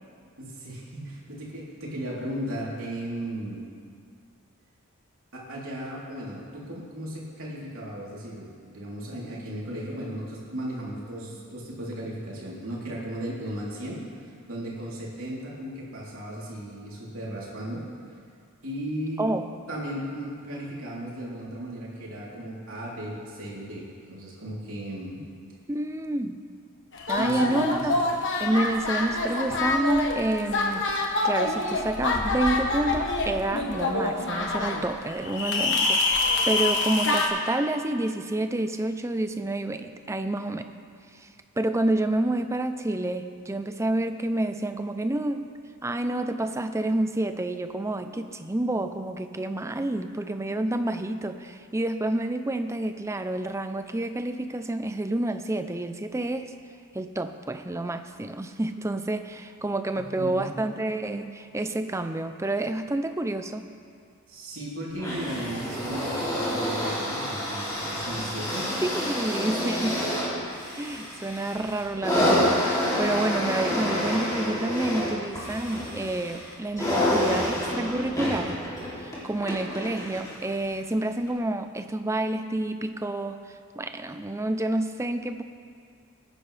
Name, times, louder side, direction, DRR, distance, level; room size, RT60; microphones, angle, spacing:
voice 1, 0.4-3.6 5.3-17.9 18.6-19.3 19.7-25.2 27.2-28.0 59.9-60.4 64.3-68.7, right 1 dB, 65° right, -6 dB, 3.4 m, -36 dB
voice 2, 19.2-19.5 25.7-26.4 27.1-27.9 28.4-40.7 41.1-41.3 41.6-45.5 45.8-56.5 56.9-63.6 68.8-70.1 70.7-78.6 79.0-85.4, right 1 dB, 15° right, 8 dB, 0.5 m, -29 dB
sound 1, 26.9-37.3, left 2 dB, 55° left, 1.3 m, -26 dB
sound 2, 65.0-80.4 81.3-81.4, equal, 15° left, 2.9 m, -28 dB
20.5 x 10.5 x 3.4 m, 2.3 s
head